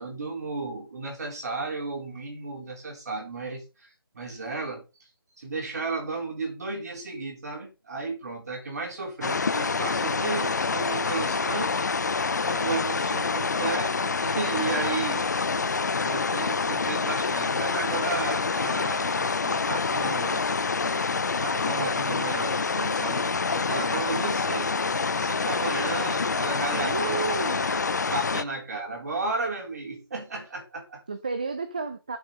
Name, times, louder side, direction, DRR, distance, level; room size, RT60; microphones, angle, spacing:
voice 1, 0.0-4.8 5.4-11.8 12.5-15.3 16.0-20.5 21.4-24.9 25.2-27.2 27.5-31.0, right 3 dB, 40° right, 3.5 m, -34 dB
sound 1, 9.2-28.4, left 4 dB, 45° left, 0.5 m, -27 dB
sound 2, 17.6-25.3, left 6 dB, 20° left, 2.7 m, -51 dB
voice 2, 26.7-27.6 31.1-32.2, right 4 dB, 20° right, 0.5 m, -31 dB
10.0 x 6.4 x 3.8 m
figure-of-eight pair, 170°, 13 cm